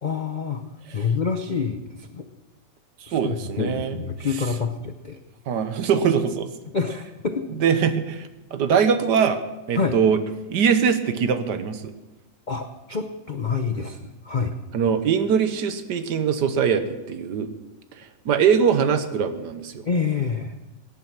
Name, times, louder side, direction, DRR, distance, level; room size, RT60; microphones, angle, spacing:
voice 1, 0.0-0.6 0.9-2.2 3.1-5.2 6.7-7.5 9.8-10.0 12.5-14.5 19.9-20.5, left 5 dB, 65° left, 7 dB, 0.4 m, -27 dB
voice 2, 3.0-4.0 5.5-6.5 7.6-9.4 9.7-10.2 10.5-11.9 14.7-17.5 18.0-19.9, right 7 dB, 70° right, 10 dB, 1.5 m, -22 dB
17.5 x 9.7 x 6.0 m, 1.0 s
omnidirectional pair, 1.9 m